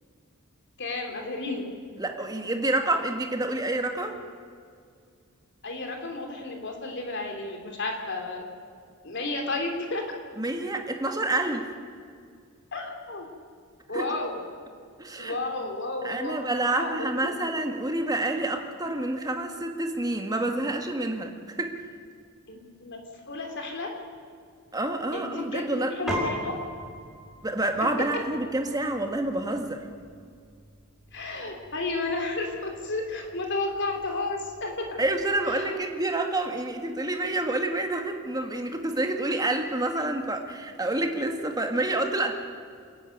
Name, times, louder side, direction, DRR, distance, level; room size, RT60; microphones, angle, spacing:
voice 1, 0.8-1.7 5.6-8.4 9.0-10.0 12.7-13.3 13.9-14.4 15.2-17.3 22.5-23.0 23.3-23.9 25.1-26.5 27.8-27.9 31.1-34.9 35.5-35.8, left 2 dB, 55° left, 3 dB, 3.5 m, -32 dB
voice 2, 2.0-4.2 10.4-11.7 13.9-14.1 15.0-15.4 16.0-21.8 24.7-25.9 27.4-29.9 35.0-42.3, right 2 dB, 15° right, 4 dB, 1.9 m, -28 dB
Piano, 26.1-35.7, right 1 dB, ahead, 5.6 m, -41 dB
28.0 x 11.0 x 9.4 m, 2.2 s
head